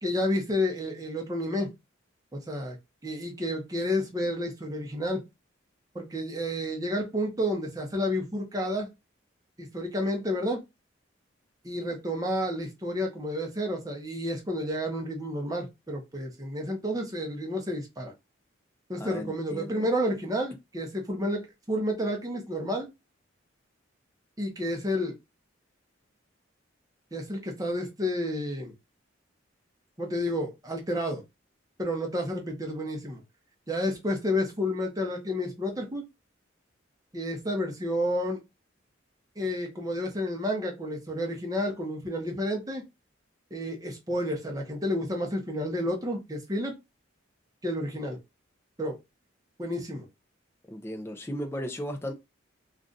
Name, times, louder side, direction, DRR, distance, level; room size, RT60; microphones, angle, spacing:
voice 1, 0.0-1.7 2.3-2.8 3.0-5.2 5.9-8.9 9.6-10.6 11.6-18.1 18.9-22.9 24.4-25.2 27.1-28.7 30.0-31.2 31.8-33.2 33.7-36.0 37.1-38.4 39.4-42.8 43.5-46.7 47.6-48.2 48.8-49.0 49.6-50.1, left 1 dB, 20° right, 0.7 m, -30 dB
voice 2, 18.9-19.9 50.7-52.1, equal, 10° left, 0.4 m, -36 dB
2.5 x 2.3 x 3.8 m
head